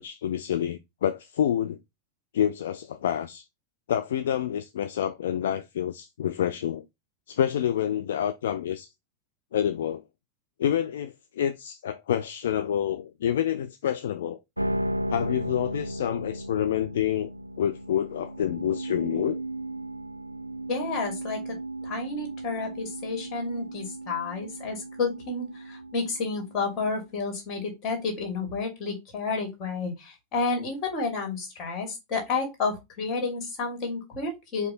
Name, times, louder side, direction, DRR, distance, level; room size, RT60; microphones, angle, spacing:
voice 1, 0.0-1.8 2.3-3.5 3.9-6.8 7.3-8.9 9.5-10.0 10.6-14.4 15.1-17.3 17.6-19.4, left 10 dB, 60° left, 0.4 m, -28 dB
ae feedback, 14.6-26.9, right 1 dB, 90° right, 0.3 m, -35 dB
voice 2, 20.7-21.6 21.8-34.7, left 4 dB, 35° left, 2.2 m, -31 dB
4.8 x 2.7 x 4.0 m
figure-of-eight pair, 90°, 0 cm